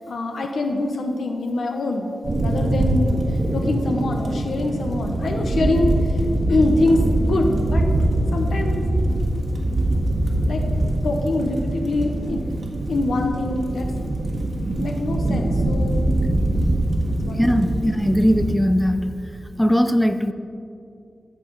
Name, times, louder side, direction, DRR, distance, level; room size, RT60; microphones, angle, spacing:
voice 1, 0.1-2.1 2.4-3.2 3.5-5.9 6.5-7.8 8.3-8.8 10.5-10.6 11.0-12.4 12.9-13.9 14.8-16.1 17.2-17.5, left 2 dB, 80° left, 3 dB, 0.8 m, -24 dB
sound 1, 2.2-18.5, right 1 dB, 55° right, 1.5 m, -23 dB
voice 2, 17.3-19.2 19.6-20.3, equal, 5° left, 9 dB, 0.4 m, -19 dB
14.0 x 4.7 x 5.4 m, 2.5 s
cardioid pair, 75°, 0 cm